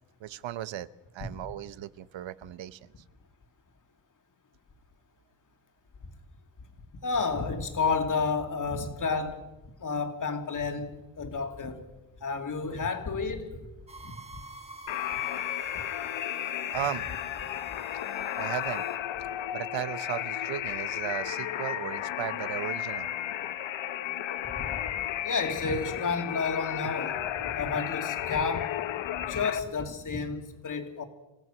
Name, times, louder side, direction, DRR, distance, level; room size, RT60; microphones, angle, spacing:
voice 1, 0.2-0.9 1.1-2.8 16.7-17.1 18.4-18.8 19.5-23.1, right 12 dB, 80° right, 0.9 m, -36 dB
voice 2, 7.0-9.4 9.8-11.8 12.2-13.6 14.0-14.2 24.5-24.8 25.2-28.8 29.3-31.0, left 4 dB, 45° left, 2.6 m, -31 dB
sound 1, 13.9-19.0, right 2 dB, 15° right, 1.6 m, -47 dB
sound 2, 14.9-29.6, left 11 dB, 90° left, 1.0 m, -33 dB
28.0 x 17.0 x 6.2 m
wide cardioid pair, 150°, 44 cm